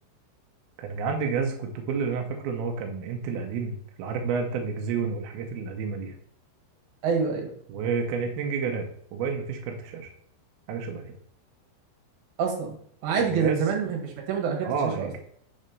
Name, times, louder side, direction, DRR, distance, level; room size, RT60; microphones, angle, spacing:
voice 1, 0.8-6.2 7.7-10.1 10.7-11.1 13.2-13.6 14.6-15.2, right 5 dB, 85° right, 4 dB, 2.1 m, -30 dB
voice 2, 7.0-7.5 12.4-12.8 13.0-15.1, right 6 dB, 65° right, 1 dB, 2.7 m, -26 dB
6.5 x 4.3 x 5.2 m, 0.64 s
omnidirectional pair, 5.5 m